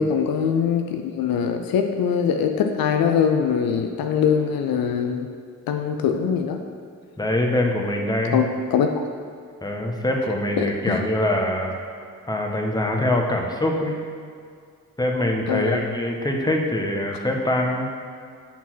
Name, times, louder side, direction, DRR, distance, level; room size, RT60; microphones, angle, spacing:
voice 1, 0.0-5.3 5.7-6.6 8.3-9.0 10.6-11.0 15.5-15.8, left 7 dB, 80° left, 5 dB, 0.6 m, -22 dB
voice 2, 7.2-8.4 9.6-11.7 12.3-14.0 15.0-17.9, left 1 dB, 10° left, 1 dB, 1.3 m, -23 dB
7.2 x 4.2 x 5.9 m, 2.2 s
supercardioid pair, 45°, 35 cm